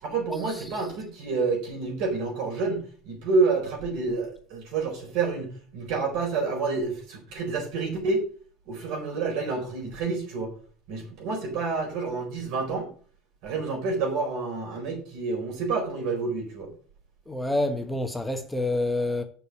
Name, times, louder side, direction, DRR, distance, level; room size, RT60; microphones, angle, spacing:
voice 1, 0.0-8.2 8.7-10.5 10.9-12.9 13.4-16.7, right 4 dB, 70° right, 4.4 m, -28 dB
voice 2, 17.3-19.2, left 2 dB, 10° left, 1.4 m, -27 dB
6.8 x 6.2 x 7.3 m
hypercardioid pair, 85°, 0 cm